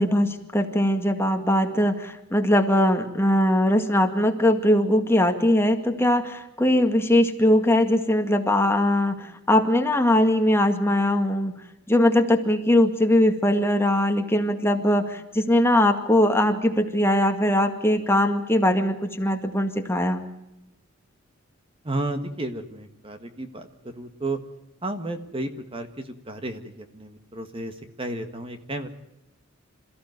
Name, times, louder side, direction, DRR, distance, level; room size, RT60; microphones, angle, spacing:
voice 1, 0.0-11.5 11.9-20.2, left 1 dB, 10° left, 5 dB, 2.0 m, -21 dB
voice 2, 21.8-24.4 24.8-28.9, right 2 dB, 30° right, 7 dB, 1.7 m, -33 dB
27.5 x 15.0 x 9.4 m, 0.90 s
head